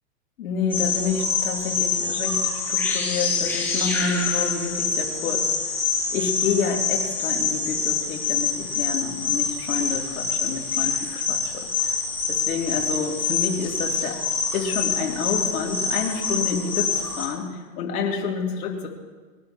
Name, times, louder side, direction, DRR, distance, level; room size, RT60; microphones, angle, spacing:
voice 1, 0.4-5.5 6.1-12.0 12.3-14.2 14.5-18.9, left 5 dB, 60° left, -1 dB, 3.3 m, -28 dB
sound 1, 0.7-17.2, left 5 dB, 5° left, 5.3 m, -26 dB
26.0 x 12.0 x 3.1 m, 1.4 s
hypercardioid pair, 155°, 48 cm